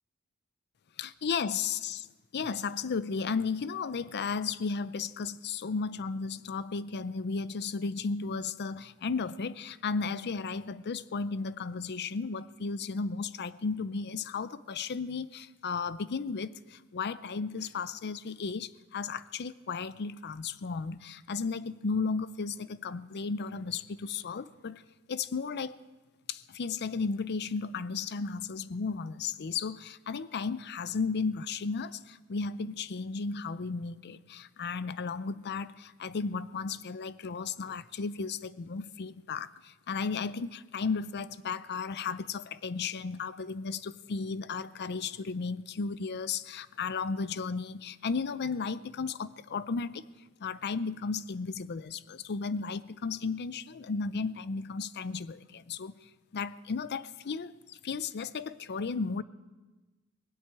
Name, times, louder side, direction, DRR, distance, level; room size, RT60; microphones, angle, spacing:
voice 1, 1.0-2.1 2.3-24.8 25.1-25.8 26.3-50.0 50.4-52.0 52.3-59.2, left 5 dB, 50° left, 16 dB, 0.5 m, -34 dB
19.5 x 8.0 x 8.9 m, 1.2 s
head